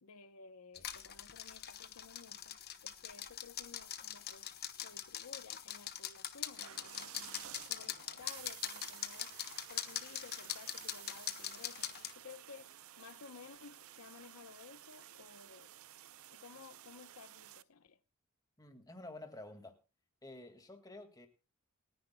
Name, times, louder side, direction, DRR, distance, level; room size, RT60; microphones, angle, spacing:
voice 1, 0.0-4.5 4.8-9.4 9.7-15.7 16.3-18.0, left 5 dB, 90° left, 0.8 m, -56 dB
sound 1, 0.7-12.1, left 10 dB, 45° left, 1.1 m, -43 dB
sound 2, 6.5-17.6, right 12 dB, 75° right, 0.6 m, -53 dB
voice 2, 18.6-19.8 20.2-21.3, left 2 dB, 15° left, 1.9 m, -50 dB
28.5 x 10.0 x 2.2 m
head